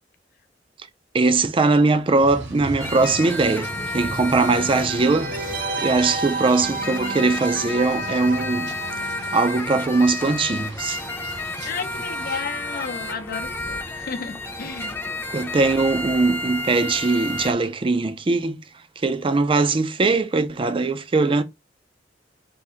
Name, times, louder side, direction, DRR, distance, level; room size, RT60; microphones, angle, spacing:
voice 1, 1.1-8.8 9.3-11.0 15.3-18.6 19.0-21.4, right 3 dB, 30° right, 0.4 m, -21 dB
sound 1, 2.2-12.4, right 1 dB, 80° right, 2.1 m, -39 dB
sound 2, 2.8-17.5, left 2 dB, 15° left, 0.6 m, -31 dB
sound 3, 4.9-10.4 10.6-10.7, right 4 dB, 50° right, 0.8 m, -32 dB
voice 2, 11.6-15.0, left 5 dB, 55° left, 0.6 m, -33 dB
3.5 x 2.6 x 4.3 m
head